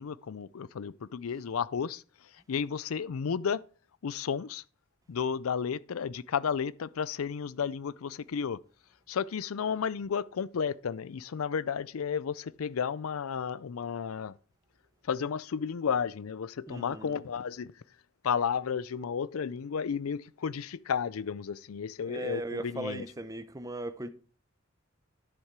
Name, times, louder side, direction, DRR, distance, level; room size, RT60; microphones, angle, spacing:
voice 1, 0.0-2.0 2.5-3.6 4.0-4.6 5.1-8.6 9.1-14.4 15.0-17.7 18.2-23.0, left 6 dB, 85° left, 0.5 m, -32 dB
voice 2, 16.7-17.2 22.1-24.1, right 1 dB, 15° right, 0.8 m, -38 dB
10.5 x 6.5 x 4.7 m
head